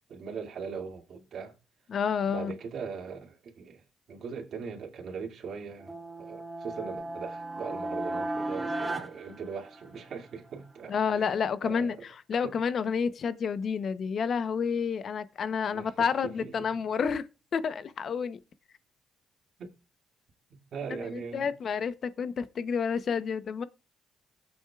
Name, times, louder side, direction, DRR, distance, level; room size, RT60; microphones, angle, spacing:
voice 1, 0.1-1.5 2.3-3.8 4.1-11.3 11.6-12.0 12.3-12.6 15.7-16.7 19.6-19.7 20.5-21.5, right 5 dB, 65° right, 2.3 m, -40 dB
voice 2, 1.9-2.5 10.9-17.2 17.5-18.4 20.9-23.6, left 6 dB, 55° left, 0.8 m, -30 dB
sound 1, 5.8-10.2, right 2 dB, 15° right, 2.1 m, -35 dB
18.5 x 7.9 x 2.4 m
cardioid pair, 90°, 0 cm